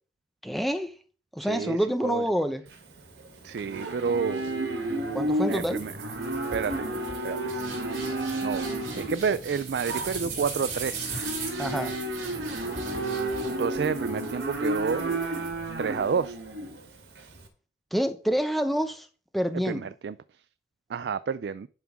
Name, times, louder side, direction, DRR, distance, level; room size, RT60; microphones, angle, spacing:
voice 1, 0.4-0.9 1.3-2.6 5.1-5.9 11.6-11.9 17.9-19.1 19.3-19.9, equal, ahead, 0.7 m, -27 dB
voice 2, 1.5-1.8 2.0-2.2 3.4-4.4 5.5-6.1 6.5-6.9 7.2-7.8 8.1-8.7 9.0-11.1 13.6-15.0 15.8-16.4 19.7-20.1 20.9-21.7, right 6 dB, 75° right, 0.4 m, -30 dB
Livestock farm animals working animals, 2.7-17.4, right 1 dB, 90° right, 1.9 m, -32 dB
sound 1, 5.5-16.0, right 4 dB, 40° right, 3.8 m, -39 dB
10.5 x 3.7 x 6.0 m
head